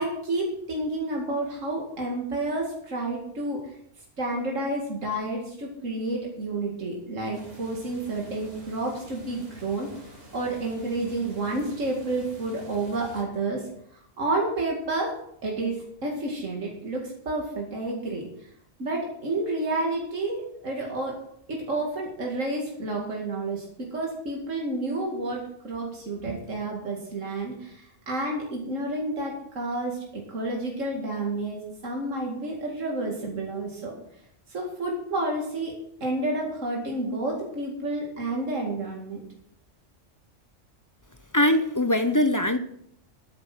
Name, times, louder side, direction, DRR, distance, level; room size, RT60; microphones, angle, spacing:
voice 1, 0.0-3.6 4.2-10.0 10.3-13.7 14.2-15.1 15.4-18.3 18.8-21.2 21.5-34.0 34.5-35.7 36.0-39.2, right 2 dB, 80° right, -1 dB, 2.6 m, -30 dB
sound 1, 7.3-13.2, equal, 50° right, 3.1 m, -48 dB
voice 2, 41.3-42.6, left 1 dB, 20° left, 9 dB, 0.6 m, -21 dB
12.0 x 9.6 x 6.0 m, 0.72 s
omnidirectional pair, 1.3 m